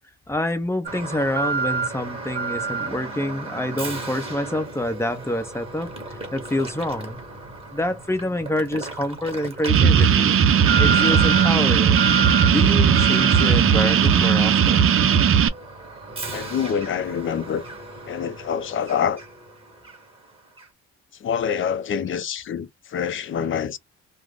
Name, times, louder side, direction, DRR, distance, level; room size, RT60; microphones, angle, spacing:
voice 1, 0.3-7.2 7.7-10.4 10.8-12.1 12.5-15.0, left 1 dB, 10° left, 0.7 m, -27 dB
Alarm, 0.9-19.5 19.8-20.0 20.6-20.7, right 4 dB, 20° right, 1.3 m, -31 dB
sound 1, 9.7-15.5, right 8 dB, 45° right, 0.5 m, -17 dB
voice 2, 16.3-17.6 18.1-19.2 21.2-23.8, left 7 dB, 45° left, 0.5 m, -26 dB
2.3 x 2.1 x 3.5 m
cardioid pair, 90°, 30 cm